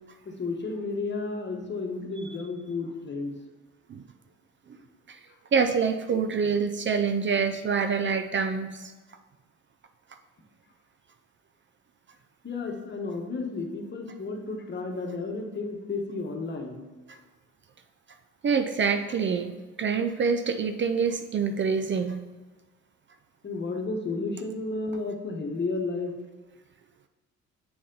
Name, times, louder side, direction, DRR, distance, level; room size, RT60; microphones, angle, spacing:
voice 1, 0.2-3.3 4.7-4.9 12.4-16.8 23.4-26.1, left 3 dB, 35° left, 2 dB, 1.2 m, -32 dB
voice 2, 5.5-8.9 18.4-22.2, right 5 dB, 40° right, 8 dB, 0.5 m, -26 dB
7.7 x 4.1 x 3.9 m, 1.3 s
cardioid pair, 90°, 30 cm